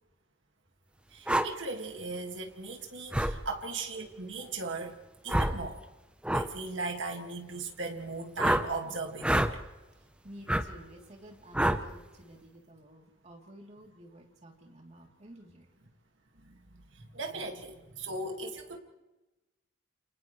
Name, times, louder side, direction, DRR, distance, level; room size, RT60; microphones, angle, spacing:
voice 1, 1.1-5.0 5.2-5.8 6.3-9.5 16.4-16.6 16.9-18.8, right 3 dB, 85° right, 3 dB, 2.1 m, -38 dB
sound 1, 1.3-1.5 3.1-3.3 5.3-5.6 6.2-6.5 8.4-8.7 9.2-9.5 10.5-10.6 11.5-11.8, right 1 dB, 5° right, 0.8 m, -26 dB
voice 2, 10.2-15.7, equal, 40° right, 0 dB, 3.2 m, -52 dB
29.0 x 27.5 x 3.2 m, 1.1 s
head